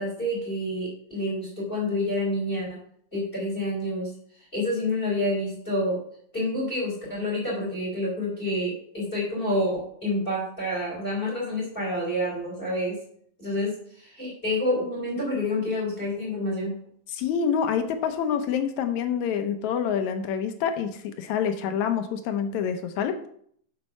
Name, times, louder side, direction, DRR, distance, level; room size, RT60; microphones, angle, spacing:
voice 1, 0.0-2.8 3.1-4.1 4.5-6.0 6.3-13.0 13.4-16.8, left 1 dB, 15° left, -4 dB, 3.4 m, -28 dB
voice 2, 17.1-23.2, left 7 dB, 70° left, 7 dB, 1.9 m, -27 dB
7.5 x 6.4 x 5.6 m, 0.63 s
omnidirectional pair, 3.9 m